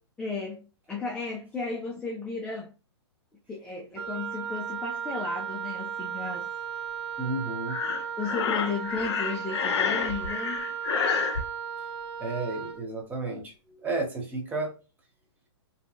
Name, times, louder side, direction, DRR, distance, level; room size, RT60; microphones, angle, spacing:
voice 1, 0.2-2.7 3.5-6.5 8.2-10.7, left 4 dB, 5° left, 0.3 m, -34 dB
Wind instrument woodwind instrument, 4.0-12.8, right 7 dB, 60° right, 0.5 m, -35 dB
voice 2, 7.2-7.8 12.2-14.7, right 3 dB, 10° right, 0.9 m, -32 dB
Breathing, 7.7-11.4, left 6 dB, 70° left, 0.5 m, -29 dB
2.6 x 2.2 x 2.5 m
hypercardioid pair, 130°, 15 cm